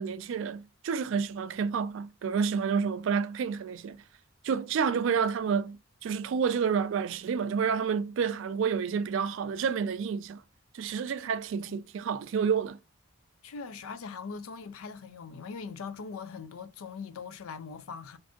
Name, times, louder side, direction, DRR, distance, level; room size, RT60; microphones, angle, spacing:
voice 1, 0.0-4.0 4.4-10.4 10.7-12.8, right 6 dB, 65° right, 0.3 m, -29 dB
voice 2, 13.4-18.2, left 5 dB, 85° left, 0.4 m, -41 dB
2.6 x 2.5 x 3.5 m
head